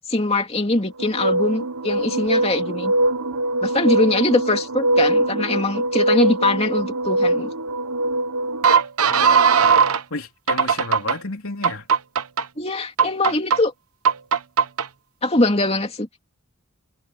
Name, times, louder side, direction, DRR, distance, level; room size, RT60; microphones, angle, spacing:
voice 1, 0.1-2.9 3.6-7.5 12.6-13.7 15.2-16.1, left 2 dB, 30° left, 2.7 m, -22 dB
sound 1, 1.0-10.0 10.5-11.2 11.6-12.4 13.0-13.6 14.1-14.9, right 4 dB, 90° right, 1.0 m, -20 dB
voice 2, 9.0-9.8 10.1-11.9, left 3 dB, 75° left, 3.7 m, -32 dB
head